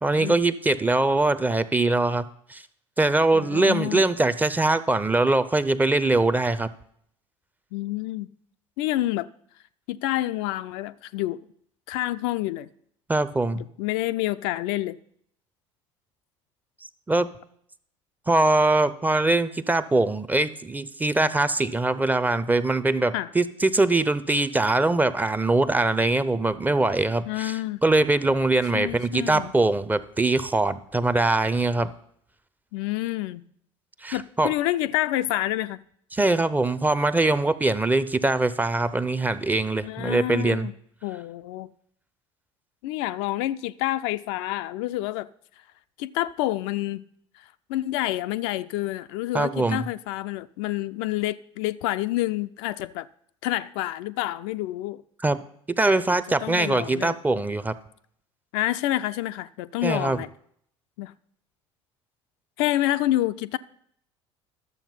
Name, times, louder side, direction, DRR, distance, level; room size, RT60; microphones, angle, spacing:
voice 1, 0.0-2.2 2.5-2.6 3.0-6.7 13.1-13.6 17.1-17.3 18.3-31.9 34.0-34.5 36.1-40.7 49.3-49.9 55.2-55.4 55.8-57.7 59.8-60.2, right 2 dB, 10° right, 0.6 m, -22 dB
voice 2, 3.3-4.0 7.7-8.3 8.8-9.3 9.9-11.4 11.9-12.7 13.6-15.0 23.1-23.3 27.3-27.8 28.7-29.5 32.7-33.4 34.1-35.8 39.8-40.7 41.0-41.7 42.8-45.3 46.0-47.0 47.7-53.1 53.4-55.0 55.9-56.0 56.4-57.1 58.5-60.3 61.0-61.1 62.6-63.6, left 15 dB, 55° left, 0.4 m, -28 dB
12.0 x 7.2 x 5.4 m
figure-of-eight pair, 65°, 16 cm